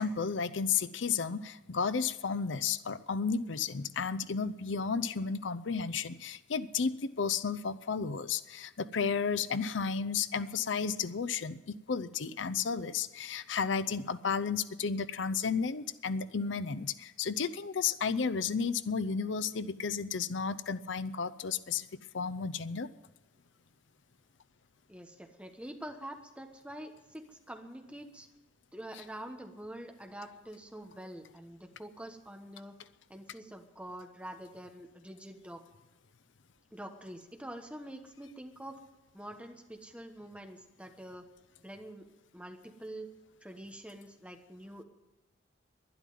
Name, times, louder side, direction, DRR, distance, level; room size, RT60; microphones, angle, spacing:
voice 1, 0.0-21.9 22.1-22.9, left 5 dB, 80° left, 14 dB, 0.6 m, -33 dB
voice 2, 24.9-28.3 28.7-32.8 33.1-35.6 36.7-38.8 39.1-41.3 41.6-42.1 42.3-43.1 43.4-44.8, right 1 dB, 5° right, 4 dB, 1.2 m, -46 dB
12.0 x 11.0 x 9.3 m, 1.1 s
head